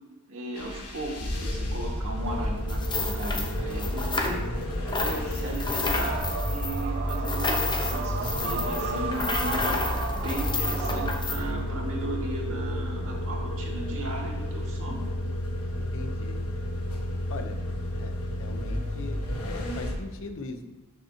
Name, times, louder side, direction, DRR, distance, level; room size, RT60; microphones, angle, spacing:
voice 1, 0.3-4.4 4.9-15.0, right 1 dB, 65° right, -2 dB, 1.9 m, -36 dB
sound 1, 0.5-19.9, equal, 85° left, 1.3 m, -31 dB
sound 2, 2.7-4.6 4.9-11.4, left 3 dB, 20° left, 0.8 m, -31 dB
sound 3, 5.9-11.2, right 5 dB, 45° right, 0.5 m, -34 dB
voice 2, 15.8-16.4 17.3-17.6 17.9-18.1 18.4-20.6, left 3 dB, 65° left, 7 dB, 0.8 m, -40 dB
12.0 x 5.8 x 2.9 m, 1.1 s
head